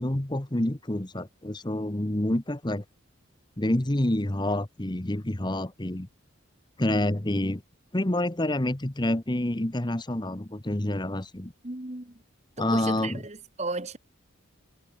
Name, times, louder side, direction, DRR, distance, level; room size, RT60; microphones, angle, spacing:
voice 1, 0.0-2.8 3.6-6.1 6.8-7.6 7.9-11.5 12.6-13.2, left 1 dB, 20° left, 1.1 m, -28 dB
voice 2, 11.6-12.2 12.6-14.0, right 3 dB, 35° right, 1.4 m, -35 dB
head